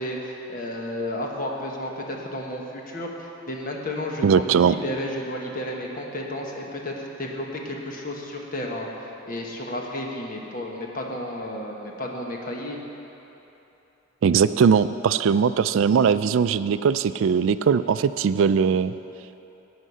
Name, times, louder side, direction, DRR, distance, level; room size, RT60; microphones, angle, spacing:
voice 1, 0.0-8.9 9.3-12.8 15.2-15.4, left 1 dB, 40° left, 0 dB, 1.3 m, -32 dB
voice 2, 4.2-4.7 14.2-18.9, right 6 dB, 65° right, 14 dB, 0.3 m, -20 dB
11.0 x 8.7 x 5.6 m, 3.0 s
head